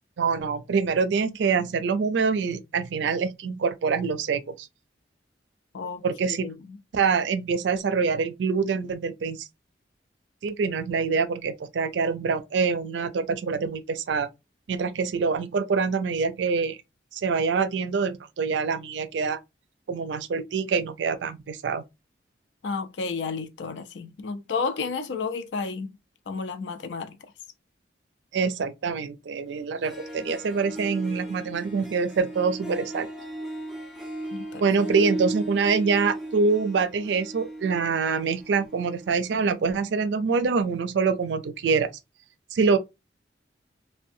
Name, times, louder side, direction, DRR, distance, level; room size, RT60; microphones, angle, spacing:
voice 1, 0.2-4.7 6.0-6.4 6.9-9.5 10.4-14.3 14.7-16.8 17.1-19.4 19.9-21.8 28.3-33.1 34.6-41.9 42.5-42.8, right 5 dB, 75° right, 0.4 m, -25 dB
voice 2, 6.3-6.8 22.6-25.9 26.3-27.2 34.3-34.6, left 4 dB, 75° left, 0.4 m, -32 dB
Harp, 29.5-29.6 29.8-39.3, right 1 dB, ahead, 0.5 m, -36 dB
2.6 x 2.2 x 2.5 m
head